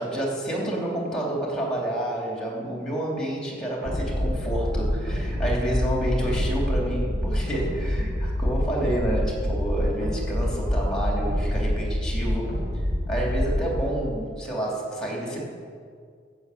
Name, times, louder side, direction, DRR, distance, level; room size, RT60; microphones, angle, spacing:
voice 1, 0.0-12.6 13.1-15.4, right 1 dB, 5° left, -2 dB, 2.9 m, -29 dB
sound 1, 3.8-13.7, equal, 85° right, 3.5 m, -26 dB
12.5 x 6.9 x 8.4 m, 2.1 s
head